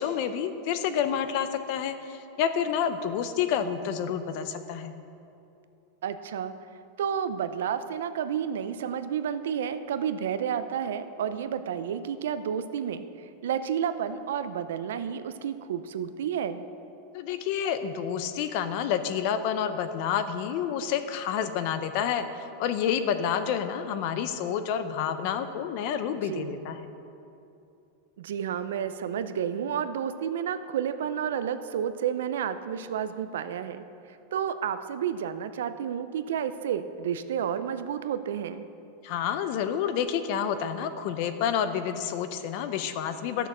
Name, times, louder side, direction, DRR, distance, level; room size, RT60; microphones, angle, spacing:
voice 1, 0.0-4.9 17.1-26.8 39.0-43.5, left 8 dB, 40° left, 10 dB, 0.6 m, -29 dB
voice 2, 6.0-6.5 7.0-16.6 26.2-26.6 28.2-33.8 34.3-38.6, right 8 dB, 90° right, 11 dB, 0.6 m, -31 dB
13.5 x 6.7 x 6.1 m, 2.8 s
supercardioid pair, 175°, 0 cm